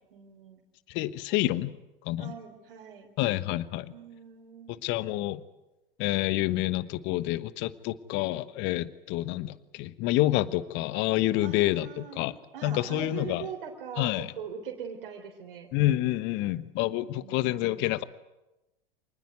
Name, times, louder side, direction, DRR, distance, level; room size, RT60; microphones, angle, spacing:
voice 1, 0.1-0.6 2.2-3.1 3.9-4.8 11.4-12.2 12.5-15.7 16.6-16.7 17.0-17.6, right 7 dB, 65° right, 2 dB, 3.5 m, -42 dB
voice 2, 0.9-1.7 2.1-2.3 3.2-3.9 4.8-5.4 6.0-12.4 12.6-13.5 14.0-14.3 15.7-18.0, left 16 dB, 40° left, 16 dB, 1.1 m, -28 dB
27.0 x 20.0 x 9.6 m, 1.0 s
figure-of-eight pair, 90°, 29 cm